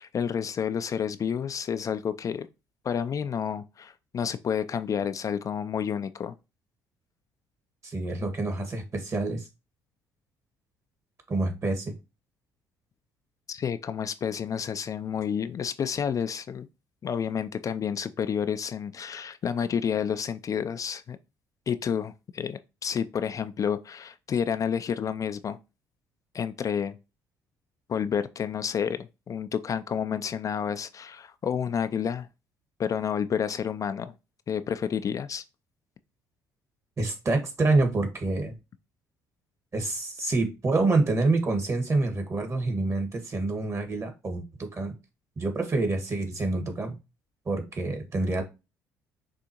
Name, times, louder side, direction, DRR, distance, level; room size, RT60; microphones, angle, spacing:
voice 1, 0.0-2.5 2.8-6.3 13.5-16.7 17.0-21.2 21.7-25.6 26.3-27.0 27.9-32.3 32.8-34.1 34.5-35.4, left 7 dB, 40° left, 0.4 m, -30 dB
voice 2, 7.8-9.5 11.3-11.9 37.0-38.5 39.7-44.9 45.4-47.0 47.5-48.4, right 2 dB, 35° right, 1.6 m, -27 dB
6.2 x 2.5 x 2.9 m
hypercardioid pair, 60°, 8 cm